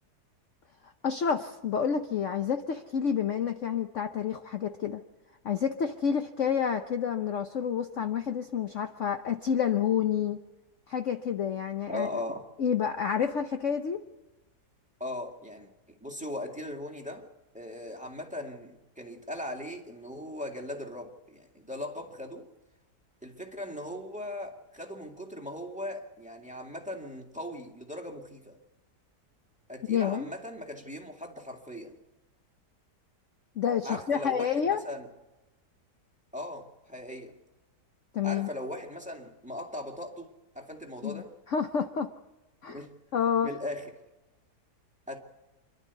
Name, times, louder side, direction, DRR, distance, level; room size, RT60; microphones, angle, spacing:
voice 1, 1.0-5.0 5.4-10.4 10.9-12.1 12.6-14.0 29.9-30.3 33.6-34.8 38.1-38.5 41.0-42.1 42.6-42.8 43.1-43.5, left 7 dB, 55° left, 1.0 m, -29 dB
voice 2, 11.9-12.4 15.0-17.3 17.5-22.5 23.2-28.6 29.7-32.0 33.8-35.1 36.3-37.3 38.2-41.3 42.6-42.9 43.4-43.9 45.1-45.2, left 1 dB, 5° right, 2.0 m, -39 dB
27.5 x 12.0 x 8.2 m
omnidirectional pair, 1.8 m